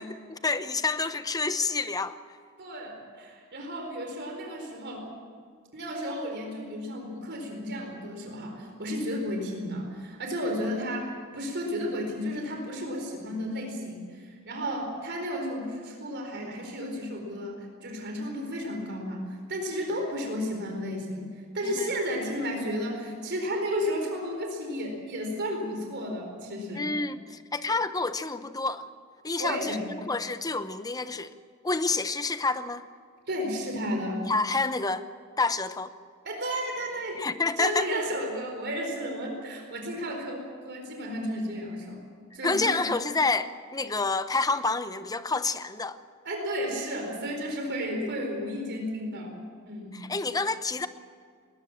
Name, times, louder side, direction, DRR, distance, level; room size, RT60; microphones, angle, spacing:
voice 1, 0.0-2.2 21.6-21.9 26.7-28.9 29.2-31.4 31.6-32.8 34.3-35.1 35.4-35.9 37.2-37.9 42.4-46.0 49.9-50.9, left 3 dB, 20° left, 12 dB, 0.8 m, -28 dB
voice 2, 2.6-5.0 5.7-26.9 29.4-29.8 33.3-34.2 36.2-37.2 37.6-42.0 42.3-42.9 46.2-50.0, equal, 55° right, 2 dB, 4.3 m, -33 dB
20.5 x 20.0 x 7.5 m, 2.1 s
head